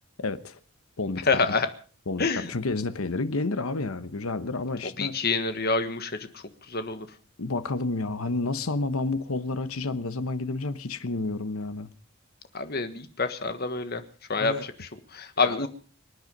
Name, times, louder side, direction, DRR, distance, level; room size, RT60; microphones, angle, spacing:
voice 1, 0.2-0.6 1.0-1.4 2.1-5.2 7.4-11.9 14.4-14.7 15.4-15.6, left 3 dB, 75° left, 1.1 m, -30 dB
voice 2, 1.3-1.7 2.2-2.5 5.0-6.1 6.7-7.1 12.5-14.0 14.3-15.7, left 4 dB, 45° left, 1.5 m, -27 dB
25.0 x 9.5 x 5.3 m
head